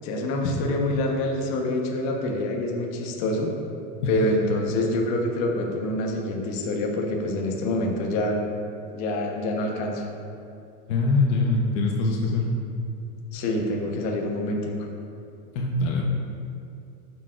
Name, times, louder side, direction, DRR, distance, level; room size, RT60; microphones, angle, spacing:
voice 1, 0.0-3.5 4.1-8.4 8.9-10.0 13.3-14.9, left 1 dB, 50° left, 1 dB, 1.1 m, -26 dB
voice 2, 10.9-12.4 15.5-16.0, left 3 dB, 70° left, 0 dB, 0.9 m, -23 dB
11.5 x 6.2 x 2.5 m, 2.5 s
supercardioid pair, 155°, 37 cm